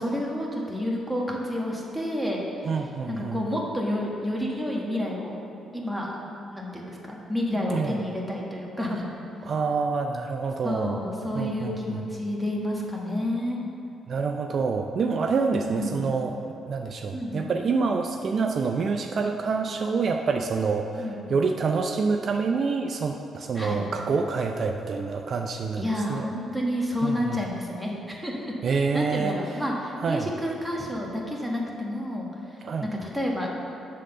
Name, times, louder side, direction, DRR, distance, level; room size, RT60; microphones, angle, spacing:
voice 1, 0.0-2.4 3.1-5.3 5.7-6.2 6.5-9.0 10.6-13.6 15.5-16.1 17.1-17.5 21.0-21.3 23.5-23.8 25.8-33.5, left 1 dB, ahead, -3 dB, 1.3 m, -30 dB
voice 2, 2.6-3.5 7.7-8.0 9.4-11.0 11.3-12.0 14.1-16.4 16.7-25.8 26.1-26.3 27.0-27.4 28.6-29.4 30.0-30.3 32.6-32.9, right 4 dB, 50° right, 4 dB, 0.4 m, -27 dB
7.7 x 3.7 x 6.5 m, 2.7 s
cardioid pair, 90°, 0 cm